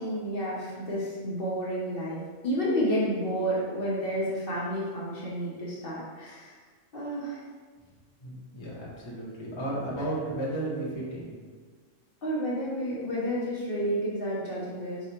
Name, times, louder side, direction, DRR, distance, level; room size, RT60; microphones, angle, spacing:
voice 1, 0.0-6.6 6.9-7.4 12.2-15.1, equal, 50° left, -7 dB, 1.0 m, -30 dB
voice 2, 8.2-11.4, right 1 dB, 25° left, -5 dB, 0.8 m, -34 dB
4.9 x 2.3 x 4.3 m, 1.5 s
omnidirectional pair, 1.3 m